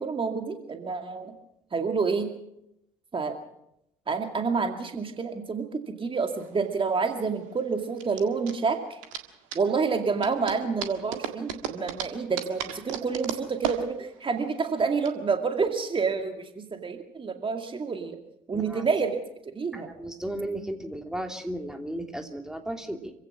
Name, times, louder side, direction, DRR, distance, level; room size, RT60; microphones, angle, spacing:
voice 1, 0.0-1.4 1.7-2.3 3.1-3.3 4.1-9.0 9.5-18.2 18.5-19.2 19.4-19.9, right 5 dB, 30° right, 5 dB, 2.3 m, -28 dB
sound 1, 6.2-15.1, right 9 dB, 70° right, 1.8 m, -36 dB
voice 2, 18.5-18.8 19.7-23.1, right 1 dB, 5° right, 4 dB, 2.8 m, -35 dB
26.5 x 16.5 x 6.1 m, 0.82 s
figure-of-eight pair, 50°, 17 cm